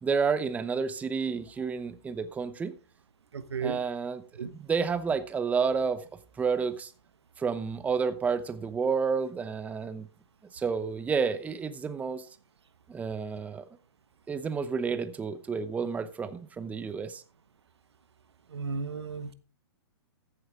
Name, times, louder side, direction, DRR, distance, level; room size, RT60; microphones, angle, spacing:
voice 1, 0.0-2.7 3.6-6.0 6.4-6.9 7.4-10.1 10.5-12.3 12.9-13.6 14.3-17.2, right 5 dB, 10° right, 0.8 m, -30 dB
voice 2, 3.3-3.8 4.4-4.5 18.5-19.3, right 5 dB, 80° right, 1.1 m, -34 dB
14.5 x 8.0 x 3.5 m
hypercardioid pair, 130°, 14 cm